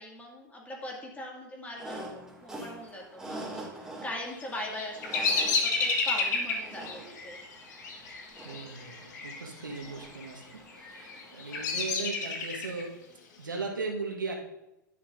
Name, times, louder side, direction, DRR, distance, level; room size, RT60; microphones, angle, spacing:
voice 1, 0.0-7.4, left 1 dB, 15° left, -1 dB, 2.2 m, -41 dB
sound 1, 1.8-12.1, right 1 dB, 5° right, 2.4 m, -46 dB
Bird vocalization bird call bird song, 4.3-9.4 9.6-10.2 10.8-12.8, left 4 dB, 65° left, 1.4 m, -30 dB
voice 2, 8.4-12.9 13.4-14.3, right 4 dB, 85° right, 1 dB, 1.4 m, -38 dB
10.5 x 6.9 x 2.6 m, 0.89 s
figure-of-eight pair, 95°, 10 cm